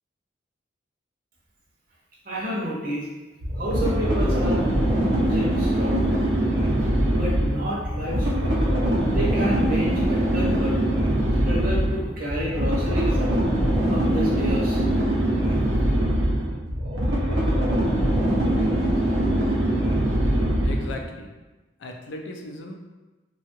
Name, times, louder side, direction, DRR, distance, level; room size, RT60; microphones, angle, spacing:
voice 1, 2.2-3.1 3.6-4.6 5.2-6.1 7.2-8.5 9.0-10.8 11.4-13.2 13.9-14.8, equal, 50° right, -4 dB, 0.7 m, -30 dB
sound 1, 3.4-21.0, right 1 dB, 85° right, 0.7 m, -22 dB
voice 2, 20.6-21.4 21.8-22.7, left 2 dB, 90° left, 2 dB, 0.4 m, -37 dB
2.7 x 2.3 x 2.9 m, 1.1 s
head